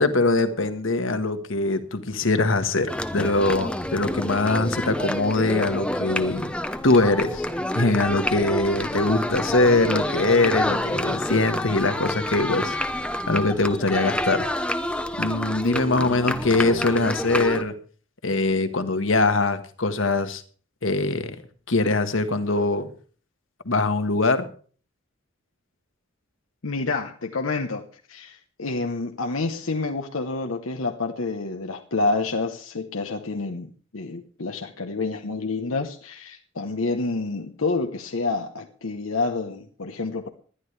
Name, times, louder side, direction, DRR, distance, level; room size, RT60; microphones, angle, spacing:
voice 1, 0.0-6.5 6.8-7.4 7.7-12.7 13.3-14.5 15.2-17.7 18.2-20.4 20.8-21.4 21.7-22.9 23.6-24.4, left 2 dB, 70° left, 1.5 m, -22 dB
sound 1, 2.9-17.6, left 1 dB, 5° left, 0.8 m, -28 dB
voice 2, 26.6-40.3, left 3 dB, 85° left, 1.1 m, -28 dB
20.0 x 11.5 x 3.3 m
head